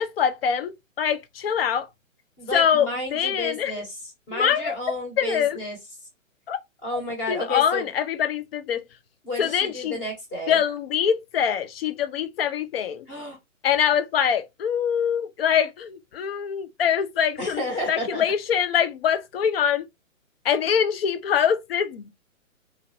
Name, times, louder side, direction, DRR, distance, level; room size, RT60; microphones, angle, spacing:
voice 1, 0.0-1.9 2.5-3.7 4.3-4.8 5.2-5.6 6.5-6.6 7.3-8.8 9.4-10.0 10.5-13.1 13.6-19.8 20.4-22.1, left 8 dB, 50° left, 0.5 m, -24 dB
voice 2, 2.4-4.0 4.3-5.8 6.8-7.9 9.2-10.6 13.1-13.4 17.4-18.2, left 1 dB, 25° left, 1.2 m, -31 dB
2.8 x 2.5 x 2.9 m
figure-of-eight pair, 130°, 40 cm